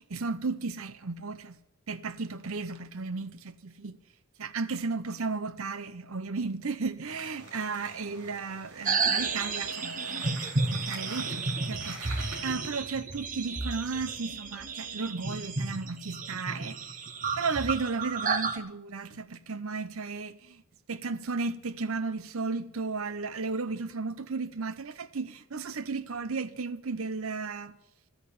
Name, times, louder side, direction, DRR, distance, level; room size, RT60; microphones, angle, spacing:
voice 1, 0.0-1.6 1.9-4.0 4.4-10.2 10.6-17.0 17.3-20.6 20.9-27.7, right 4 dB, 65° right, 0.8 m, -34 dB
sound 1, 7.0-12.4, right 2 dB, 85° right, 4.2 m, -45 dB
sound 2, 8.9-18.6, right 4 dB, 40° right, 1.0 m, -32 dB
13.5 x 8.1 x 10.0 m
head